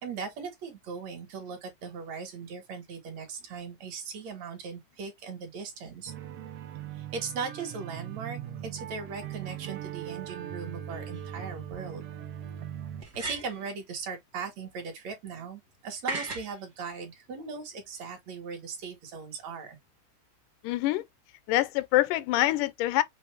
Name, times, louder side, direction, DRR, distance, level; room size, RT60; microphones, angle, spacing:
voice 1, 0.0-6.1 6.9-12.0 13.2-19.8, right 5 dB, 60° right, 2.6 m, -39 dB
sound 1, 6.1-13.0, right 10 dB, 85° right, 1.3 m, -40 dB
sound 2, 11.1-11.2 13.0-13.7 16.1-16.5, right 3 dB, 45° right, 1.3 m, -35 dB
voice 2, 20.6-21.0 21.5-23.0, left 16 dB, 90° left, 2.2 m, -25 dB
6.3 x 2.5 x 3.3 m
omnidirectional pair, 3.6 m